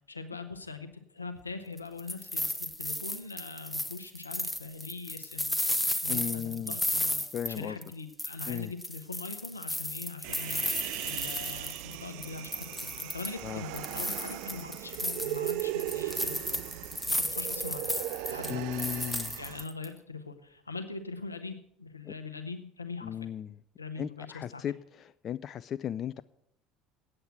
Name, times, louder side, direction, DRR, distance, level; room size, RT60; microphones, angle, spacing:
voice 1, 0.1-5.5 6.0-7.2 7.5-10.6 11.0-16.4 17.1-18.0 18.3-18.6 19.4-23.3 23.8-24.6, left 4 dB, 85° left, 8 dB, 0.8 m, -42 dB
sound 1, 1.8-7.9 8.2-12.0 12.2-13.4 13.7-19.9, left 1 dB, 5° left, 0.9 m, -34 dB
voice 2, 6.1-6.8 7.3-7.8 8.5-8.7 13.4-13.6 18.5-19.4 22.1-22.2 23.0-23.5 24.0-26.2, left 10 dB, 40° left, 14 dB, 0.3 m, -36 dB
Human voice, 10.2-19.6, right 17 dB, 60° right, 0.3 m, -38 dB
8.8 x 7.9 x 7.4 m, 0.74 s
figure-of-eight pair, 65°, 0 cm